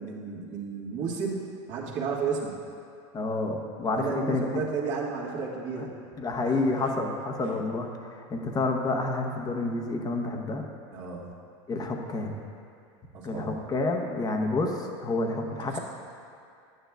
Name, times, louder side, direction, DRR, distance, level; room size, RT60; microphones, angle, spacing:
voice 1, 0.0-2.5 3.9-5.9 6.4-6.9 7.4-7.6 10.9-11.4 13.1-13.7 15.6-15.8, right 5 dB, 50° right, -4 dB, 1.6 m, -33 dB
voice 2, 3.1-4.6 6.2-10.7 11.7-12.4 13.2-15.8, left 2 dB, 25° left, 2 dB, 0.9 m, -29 dB
11.0 x 9.1 x 2.3 m, 2.5 s
supercardioid pair, 115°, 16 cm